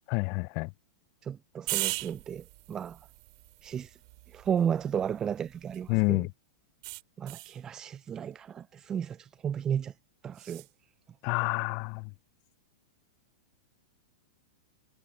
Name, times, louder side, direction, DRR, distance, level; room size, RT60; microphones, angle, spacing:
voice 1, 0.1-0.7 5.9-6.3 11.2-12.0, left 29 dB, 45° left, 0.4 m, -28 dB
voice 2, 1.2-3.0 3.6-4.0 4.3-6.3 7.2-9.9 10.2-10.6, right 8 dB, 20° right, 0.3 m, -33 dB
sound 1, 1.7-6.1 6.8-7.6 10.3-10.7, right 28 dB, 55° right, 3.6 m, -39 dB
hypercardioid pair, 120°, 3 cm